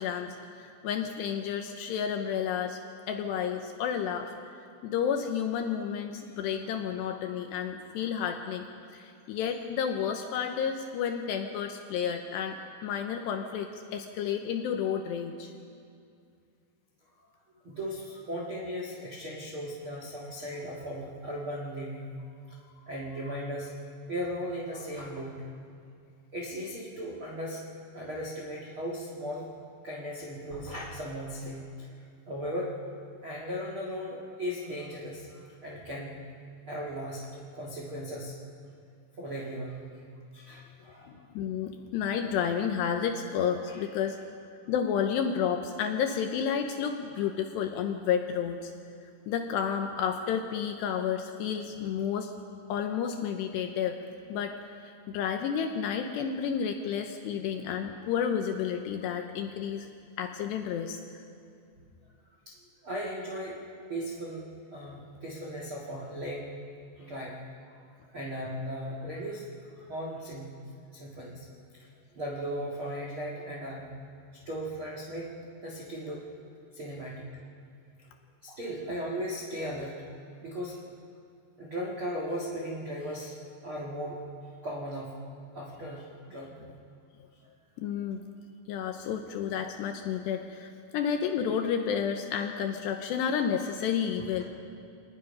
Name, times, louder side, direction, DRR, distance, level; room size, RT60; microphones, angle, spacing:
voice 1, 0.0-2.8 3.1-4.6 4.8-8.7 8.9-15.5 41.1-44.2 44.7-48.7 49.3-52.3 52.7-54.0 54.3-54.6 54.8-59.9 60.2-61.0 87.8-88.2 88.7-94.4, left 8 dB, 80° left, 5 dB, 2.5 m, -31 dB
voice 2, 17.6-22.1 22.9-23.7 24.1-25.4 26.3-27.6 27.9-29.5 29.8-31.9 32.3-32.7 33.2-36.2 36.7-38.4 39.2-39.9 40.3-41.1 43.6-43.8 47.2-47.3 62.4-62.5 62.8-63.6 63.9-66.4 67.0-67.4 67.7-67.8 68.1-69.5 69.7-70.5 70.9-71.4 72.1-73.9 74.4-75.3 75.6-76.2 76.7-77.2 78.4-80.0 80.4-80.8 81.6-83.3 83.6-84.2 84.6-85.2 85.5-86.5, equal, 60° right, -3 dB, 1.3 m, -37 dB
25.0 x 19.5 x 5.5 m, 2.3 s
omnidirectional pair, 5.8 m